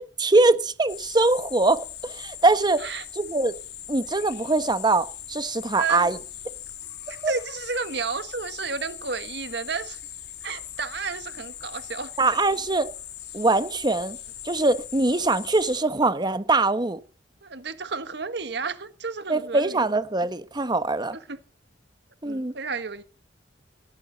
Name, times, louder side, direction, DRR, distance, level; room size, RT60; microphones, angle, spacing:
voice 1, 0.0-2.8 3.2-3.5 3.9-6.2 7.2-7.3 12.2-12.9 13.3-14.2 14.4-17.0 19.3-21.2 22.2-22.5, right 2 dB, 25° right, 1.1 m, -22 dB
sound 1, 0.9-15.8, left 11 dB, 65° left, 2.3 m, -40 dB
voice 2, 5.7-6.2 7.1-10.0 10.4-12.3 17.4-19.8 21.1-21.4 22.2-23.0, right 4 dB, 65° right, 1.5 m, -32 dB
17.0 x 14.5 x 4.1 m
head